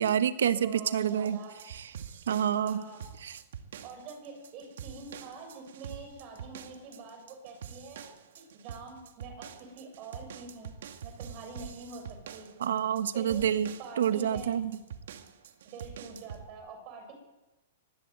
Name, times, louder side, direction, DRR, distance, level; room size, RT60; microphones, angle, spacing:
voice 1, 0.0-1.4 1.7-1.9 2.3-2.8 3.2-3.4 12.6-14.7, right 9 dB, 85° right, 11 dB, 1.3 m, -28 dB
voice 2, 0.6-1.5 2.6-3.0 3.8-8.0 8.3-12.5 13.1-13.5 13.8-14.6 15.7-17.1, right 4 dB, 30° right, 5 dB, 7.0 m, -45 dB
sound 1, 1.0-16.5, right 8 dB, 65° right, 2.1 m, -46 dB
24.0 x 20.5 x 8.0 m, 1.1 s
hypercardioid pair, 170°, 0 cm